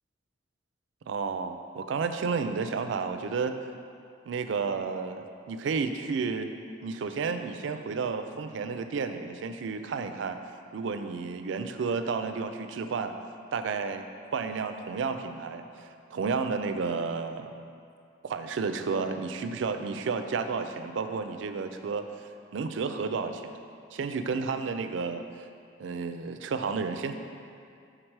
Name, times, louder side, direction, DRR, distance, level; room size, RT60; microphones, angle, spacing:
voice 1, 1.1-3.5 4.3-6.5 6.8-10.4 10.7-13.1 13.5-14.0 14.3-17.5 18.2-22.0 22.5-23.6 23.9-25.4 25.8-27.1, right 5 dB, 75° right, 8 dB, 0.4 m, -31 dB
6.5 x 3.8 x 4.6 m, 2.4 s
head